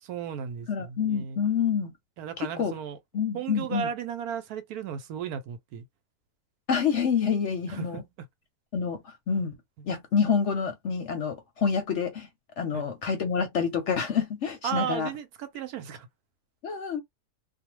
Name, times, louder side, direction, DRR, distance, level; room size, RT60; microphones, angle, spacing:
voice 1, 0.0-1.4 2.2-3.0 3.3-5.8 7.7-8.0 12.7-12.9 14.6-16.1, right 8 dB, 75° right, 1.1 m, -35 dB
voice 2, 0.7-1.9 2.4-2.7 3.1-3.9 6.7-8.0 8.7-9.6 9.8-12.3 12.6-15.1 16.6-17.0, left 6 dB, 60° left, 0.8 m, -27 dB
2.6 x 2.1 x 3.0 m
omnidirectional pair, 1.7 m